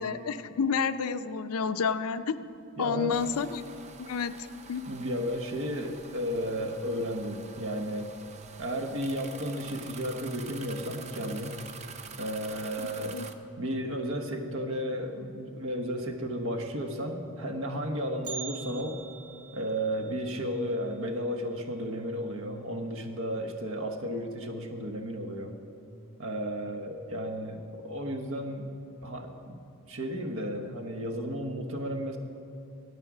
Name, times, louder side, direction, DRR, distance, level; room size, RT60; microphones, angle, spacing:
voice 1, 0.0-2.3 2.8-3.7 4.0-4.4 4.7-4.8 13.1-13.3, left 6 dB, 80° left, 12 dB, 0.5 m, -30 dB
voice 2, 2.8-3.2 4.9-8.1 8.6-11.5 12.1-13.2 13.6-19.0 19.5-25.5 26.2-28.7 29.0-29.6 29.9-32.2, equal, 60° right, 5 dB, 1.1 m, -33 dB
sound 1, 3.1-13.3, right 5 dB, 30° right, 0.5 m, -47 dB
Bell, 18.2-22.3 22.6-22.7 23.2-23.3 24.1-24.2 25.0-25.2 25.6-25.7, right 6 dB, 80° right, 2.1 m, -46 dB
13.0 x 8.8 x 6.1 m, 2.6 s
head